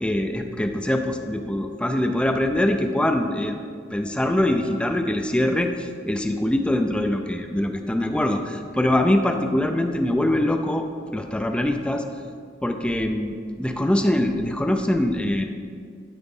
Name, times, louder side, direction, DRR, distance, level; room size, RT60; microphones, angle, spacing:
voice 1, 0.0-3.6 3.9-10.9 11.1-12.0 12.6-15.4, left 1 dB, 5° left, 5 dB, 0.4 m, -23 dB
12.0 x 4.8 x 3.7 m, 2.2 s
head